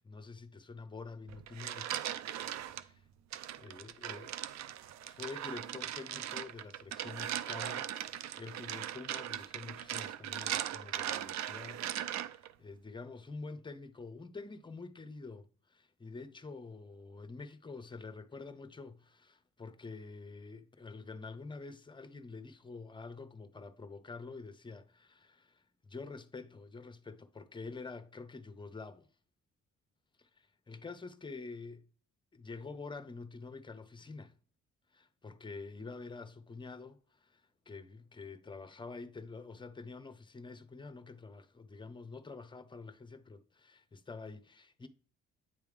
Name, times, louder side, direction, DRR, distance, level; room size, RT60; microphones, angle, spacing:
voice 1, 0.0-2.0 2.5-3.0 3.5-4.3 5.0-29.1 30.2-31.9 32.3-34.4 34.9-44.9, left 3 dB, 15° left, 0.6 m, -47 dB
sound 1, 1.3-2.8 3.3-12.5, right 11 dB, 65° right, 0.5 m, -39 dB
8.9 x 3.4 x 3.3 m
cardioid pair, 90°, 30 cm